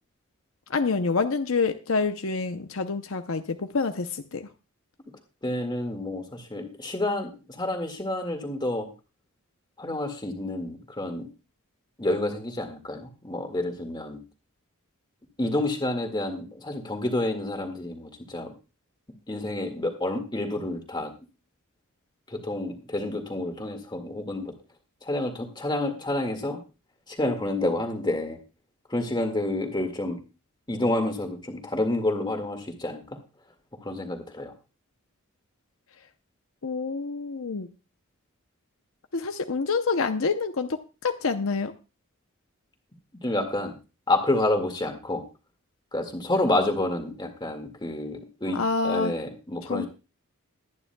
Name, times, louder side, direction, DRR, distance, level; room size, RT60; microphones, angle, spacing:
voice 1, 0.7-4.5 36.6-37.7 39.1-41.7 48.5-49.1 49.6-49.9, left 4 dB, 65° left, 7 dB, 0.7 m, -27 dB
voice 2, 5.4-8.9 9.8-11.3 12.0-14.2 15.4-18.5 19.3-21.1 22.3-24.5 25.0-26.6 27.1-28.4 28.9-30.2 30.7-33.2 33.8-34.5 43.1-43.8 44.1-45.2 45.9-48.6 48.8-49.9, left 1 dB, 20° left, 4 dB, 1.9 m, -29 dB
22.5 x 9.7 x 2.3 m, 0.31 s
head